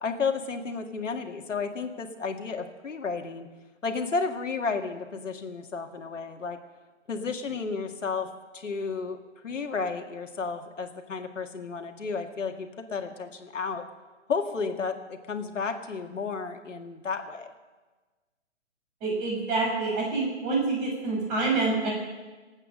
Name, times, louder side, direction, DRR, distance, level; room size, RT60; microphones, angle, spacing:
voice 1, 0.0-3.5 3.8-6.6 7.1-8.3 8.5-9.2 9.4-13.8 14.3-17.5, left 4 dB, 85° left, 4 dB, 1.9 m, -32 dB
voice 2, 19.0-21.9, right 3 dB, 20° right, -1 dB, 5.6 m, -27 dB
25.0 x 8.8 x 6.3 m, 1.3 s
hypercardioid pair, 155°, 36 cm